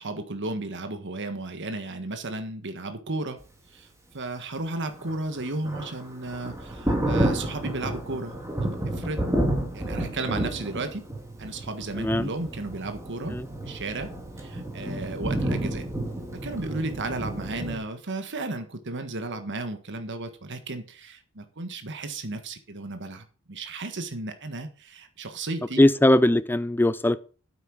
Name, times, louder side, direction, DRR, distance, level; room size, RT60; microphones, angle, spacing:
voice 1, 0.0-3.4 3.7-3.9 4.1-9.3 9.7-11.0 11.4-13.4 13.6-14.1 14.4-15.9 16.3-25.8, right 2 dB, 55° right, 1.6 m, -34 dB
Thunder, 4.9-17.8, right 1 dB, 15° right, 2.8 m, -30 dB
voice 2, 12.0-12.3 13.3-13.5 25.8-27.2, left 1 dB, 10° left, 0.6 m, -20 dB
9.1 x 8.7 x 6.1 m
head